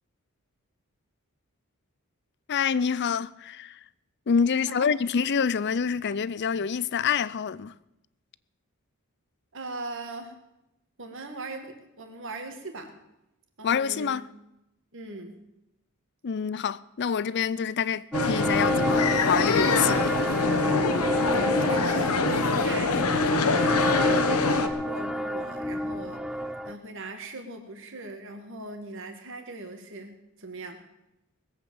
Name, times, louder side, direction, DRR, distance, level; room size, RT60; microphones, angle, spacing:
voice 1, 2.5-3.8 4.3-7.7 13.6-14.2 16.2-20.0, left 6 dB, 50° left, 0.5 m, -27 dB
voice 2, 4.5-4.9 9.5-10.3 11.0-12.9 13.6-14.2 14.9-15.3 21.2-30.8, right 2 dB, 60° right, 2.1 m, -40 dB
sound 1, 18.1-24.7, left 3 dB, 90° left, 1.3 m, -25 dB
sound 2, 18.1-26.7, equal, 5° right, 0.6 m, -29 dB
20.0 x 8.1 x 7.2 m
head